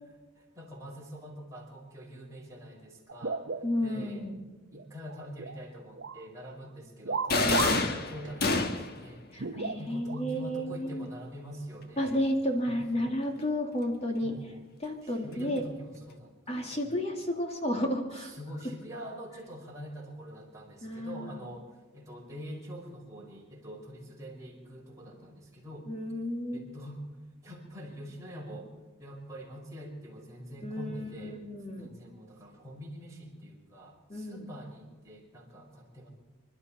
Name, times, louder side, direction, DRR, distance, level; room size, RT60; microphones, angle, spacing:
voice 1, 0.3-4.3 4.7-7.8 8.1-12.1 12.7-13.2 14.2-14.6 15.0-16.9 18.1-25.9 26.5-27.0 27.4-28.7 29.0-31.4 31.8-36.1, equal, 15° right, -3 dB, 5.0 m, -45 dB
sound 1, 3.1-4.2 4.5-5.6 6.0-6.3 7.1-7.9 8.2-8.3 9.4-10.2 11.1-11.2 12.1-12.3, right 4 dB, 60° right, 0.7 m, -35 dB
voice 2, 3.6-4.4 7.4-7.7 9.3-11.1 12.0-14.3 14.8-15.6 16.5-18.3 20.8-21.5 25.9-26.6 30.6-31.9 34.1-34.5, left 1 dB, 30° left, 3 dB, 2.3 m, -32 dB
sound 2, 7.3-9.0, left 3 dB, 50° left, 1.4 m, -27 dB
26.5 x 12.5 x 4.3 m, 1.3 s
head